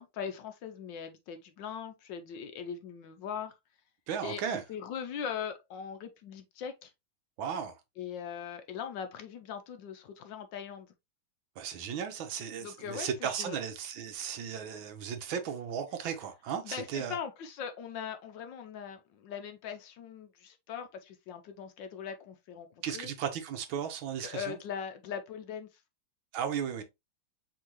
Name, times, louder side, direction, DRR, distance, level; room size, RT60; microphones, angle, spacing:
voice 1, 0.0-3.5 4.2-6.9 8.0-10.9 12.6-13.6 16.6-23.1 24.2-25.7, left 7 dB, 70° left, 1.2 m, -40 dB
voice 2, 4.1-4.6 7.4-7.7 11.6-17.2 22.8-24.6 26.3-26.8, right 8 dB, 75° right, 1.6 m, -35 dB
4.6 x 3.8 x 3.0 m
omnidirectional pair, 2.3 m